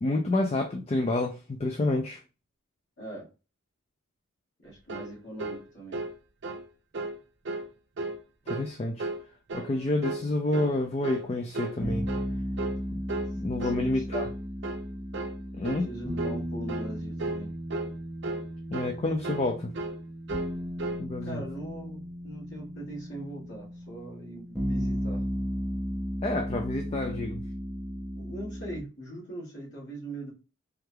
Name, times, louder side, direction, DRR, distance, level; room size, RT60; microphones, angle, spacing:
voice 1, 0.0-2.2 8.5-9.1 9.5-12.1 12.9-13.0 13.4-14.3 15.6-15.9 18.7-19.7 21.0-21.4 26.2-27.5, left 2 dB, 30° left, 0.3 m, -29 dB
voice 2, 3.0-3.3 4.6-6.0 13.3-14.1 15.8-17.5 21.2-25.3 28.2-30.3, right 1 dB, 55° left, 1.9 m, -41 dB
sound 1, 4.9-5.1 5.4-5.6 5.9-6.1 6.4-6.7 6.9-7.2 7.5-7.7 8.0-8.2 8.5-8.7 9.0-9.2 9.5-9.7 10.0-10.3 10.5-10.8 11.0-11.3 11.5-11.8 12.1-12.3 12.6-12.8 13.1-13.3 13.6-13.8 14.1-14.3 14.6-14.8 15.1-15.4 15.6-15.9 16.2-16.4 16.7-16.9 17.2-17.4 17.7-17.9 18.2-18.5 18.7-19.0 19.2-19.5 19.7-20.0 20.3-20.5 20.8-21.0, right 2 dB, 60° right, 0.6 m, -34 dB
sound 2, 9.5-13.0, equal, 85° left, 1.7 m, -58 dB
sound 3, 11.8-28.8, equal, 5° right, 0.8 m, -35 dB
3.5 x 3.3 x 2.2 m
head